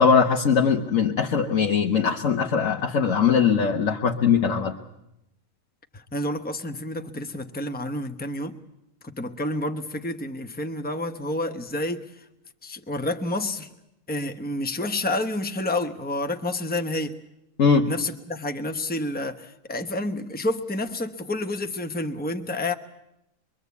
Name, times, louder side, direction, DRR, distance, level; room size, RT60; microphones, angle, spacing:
voice 1, 0.0-4.7 17.6-17.9, left 6 dB, 85° left, 1.5 m, -21 dB
voice 2, 5.9-8.6 9.0-12.0 12.6-13.7 14.1-17.2 17.8-22.7, left 1 dB, 10° left, 0.9 m, -29 dB
24.0 x 23.0 x 8.3 m
omnidirectional pair, 1.3 m